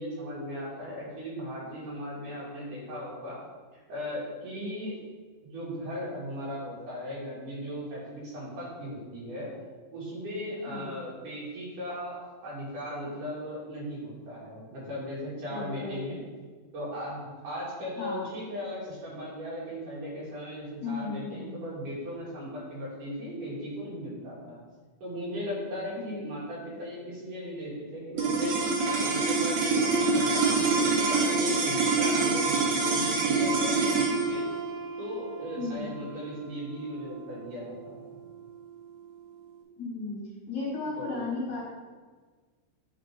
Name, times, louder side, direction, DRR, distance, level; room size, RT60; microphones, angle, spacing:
voice 1, 0.0-3.4 3.9-4.9 5.5-9.5 9.9-16.3 16.7-24.6 25.0-28.6 28.9-34.5 35.0-38.2 41.0-41.1, equal, 55° right, -7 dB, 3.5 m, -37 dB
voice 2, 15.5-16.1 18.0-18.2 20.8-21.5 26.0-26.3 35.6-36.0 39.8-40.2 40.5-41.6, left 3 dB, 65° left, -5 dB, 2.7 m, -35 dB
sound 1, 28.2-38.6, right 3 dB, 80° right, 1.6 m, -26 dB
9.3 x 5.5 x 3.7 m, 1.4 s
omnidirectional pair, 4.8 m